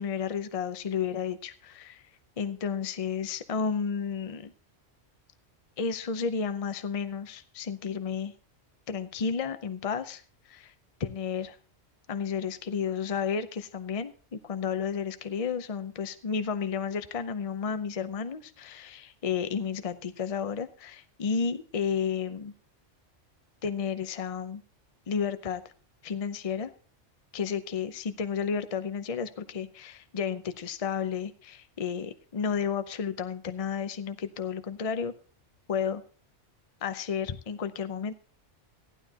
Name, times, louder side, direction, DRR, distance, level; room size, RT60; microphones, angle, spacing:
voice 1, 0.0-2.0 2.4-4.5 5.8-8.3 8.9-10.2 10.5-10.7 11.0-11.5 12.1-22.5 23.6-24.6 25.1-25.6 26.0-26.7 27.3-35.2 35.7-36.0 36.8-38.1, left 6 dB, 35° left, 10 dB, 0.6 m, -32 dB
15.0 x 12.0 x 2.9 m, 0.38 s
omnidirectional pair, 1.3 m